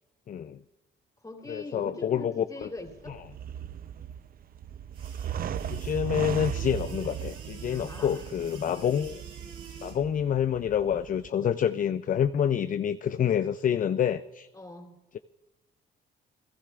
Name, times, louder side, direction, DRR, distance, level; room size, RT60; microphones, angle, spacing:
voice 1, 0.3-0.6 1.5-2.7 3.1-3.2 5.7-9.2 9.8-14.5, left 9 dB, 45° left, 12 dB, 0.4 m, -27 dB
voice 2, 1.2-3.2 7.7-8.2 8.6-8.7 14.5-15.0, left 2 dB, 20° left, 2 dB, 3.2 m, -42 dB
sound 1, 2.8-11.3, right 9 dB, 45° right, 0.5 m, -37 dB
sound 2, 4.9-9.9, right 5 dB, 80° right, 6.7 m, -49 dB
29.5 x 13.0 x 2.4 m, 1.1 s
cardioid pair, 90°, 20 cm